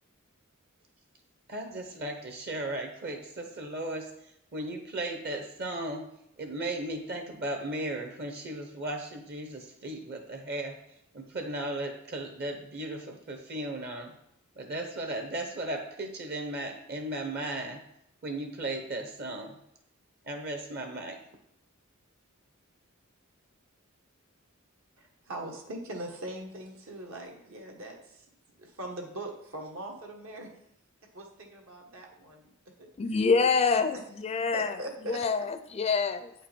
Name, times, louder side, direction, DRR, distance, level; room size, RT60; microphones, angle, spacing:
voice 1, 1.5-4.1 4.5-6.1 6.4-10.7 11.1-14.1 14.6-17.8 18.2-19.5 20.3-21.2, right 1 dB, 50° right, 4 dB, 0.9 m, -36 dB
voice 2, 25.0-28.2 28.6-30.5 31.1-32.5 32.8-32.9 33.9-34.0 34.5-35.2, right 1 dB, 75° right, 1 dB, 1.5 m, -41 dB
voice 3, 33.0-34.8 35.1-36.3, left 4 dB, 30° left, 9 dB, 0.4 m, -26 dB
8.4 x 5.1 x 4.4 m, 0.77 s
head